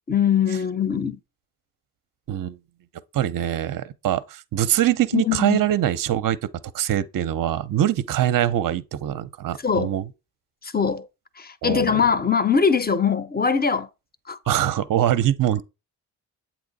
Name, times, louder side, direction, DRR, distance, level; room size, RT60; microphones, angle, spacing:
voice 1, 0.1-1.2 5.1-5.6 9.6-10.0 10.6-11.1 11.4-13.9 14.3-14.4, left 6 dB, 20° left, 0.7 m, -22 dB
voice 2, 3.1-6.4 6.7-10.0 11.6-12.0 14.5-15.6, right 12 dB, 45° right, 0.6 m, -23 dB
7.9 x 3.0 x 4.0 m
supercardioid pair, 45°, 48 cm